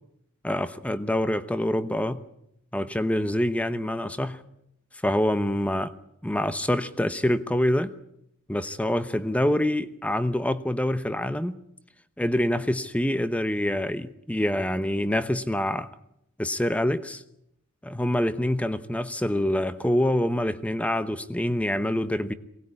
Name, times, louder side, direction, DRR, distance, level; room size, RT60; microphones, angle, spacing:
voice 1, 0.4-2.2 2.7-4.4 5.0-5.9 6.2-7.9 8.5-11.6 12.2-15.9 16.4-17.2 17.8-22.3, left 1 dB, 5° left, 0.9 m, -26 dB
23.5 x 19.0 x 9.8 m
head